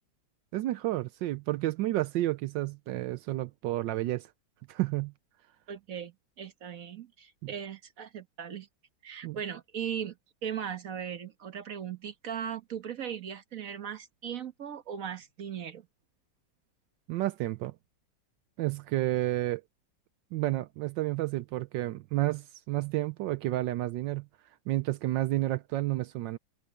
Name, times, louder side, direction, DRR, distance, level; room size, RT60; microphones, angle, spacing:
voice 1, 0.5-4.3 4.7-5.1 9.2-9.4 17.1-17.7 18.6-19.6 20.3-24.3 24.7-26.4, right 16 dB, 75° right, 1.1 m, -30 dB
voice 2, 5.7-8.7 9.0-10.2 10.4-15.9, right 8 dB, 45° right, 1.5 m, -38 dB
open air
omnidirectional pair, 2.2 m